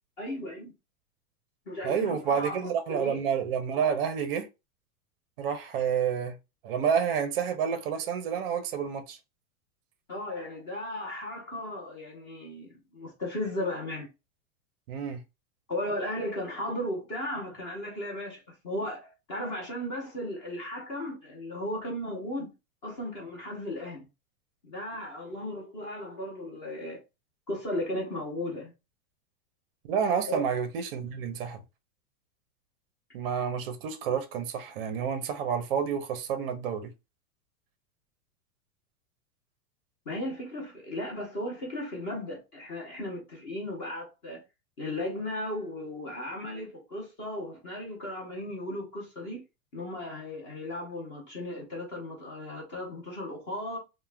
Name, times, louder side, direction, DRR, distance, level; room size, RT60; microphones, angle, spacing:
voice 1, 0.2-0.7 1.7-3.2 10.1-14.1 15.7-22.5 22.8-24.0 24.6-27.0 27.5-28.7 30.3-30.4 40.1-44.4 44.8-49.4 49.7-53.8, left 1 dB, 20° left, 0.5 m, -36 dB
voice 2, 1.8-4.5 5.4-6.4 6.6-9.2 14.9-15.2 29.8-31.6 33.1-36.9, right 7 dB, 40° right, 0.5 m, -29 dB
2.3 x 2.1 x 3.1 m
supercardioid pair, 170°, 44 cm